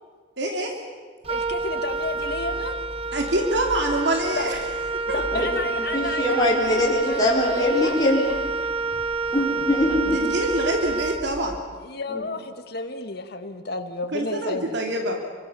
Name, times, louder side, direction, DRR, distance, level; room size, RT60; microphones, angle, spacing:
voice 1, 0.4-0.7 3.1-4.6 5.1-5.2 10.1-11.6 14.1-15.2, right 1 dB, 65° right, 3 dB, 2.8 m, -25 dB
Wind instrument woodwind instrument, 1.2-11.7, right 3 dB, 30° right, 0.8 m, -28 dB
voice 2, 1.3-2.8 4.4-4.5 5.1-8.0 11.8-14.8, left 3 dB, 55° left, 6 dB, 2.1 m, -32 dB
voice 3, 5.9-8.4 9.3-10.2 12.1-12.2, left 1 dB, 20° left, -5 dB, 4.6 m, -22 dB
27.0 x 24.0 x 7.3 m, 1.5 s
head